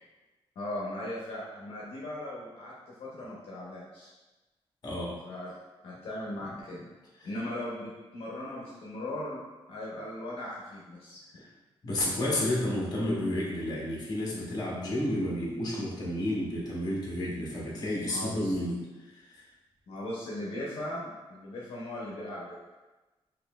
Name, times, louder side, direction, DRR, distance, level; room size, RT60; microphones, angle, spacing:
voice 1, 0.6-2.7 3.0-4.1 5.2-5.6 5.8-6.9 7.2-9.4 9.7-11.2 18.0-18.5 19.9-22.6, left 1 dB, 70° left, -6 dB, 0.7 m, -38 dB
voice 2, 4.8-5.2 7.2-7.3 11.4-11.5 11.8-18.8 19.0-19.4, left 1 dB, 40° left, -5 dB, 1.1 m, -31 dB
4.1 x 2.8 x 2.3 m, 1.2 s
cardioid pair, 125°, 10 cm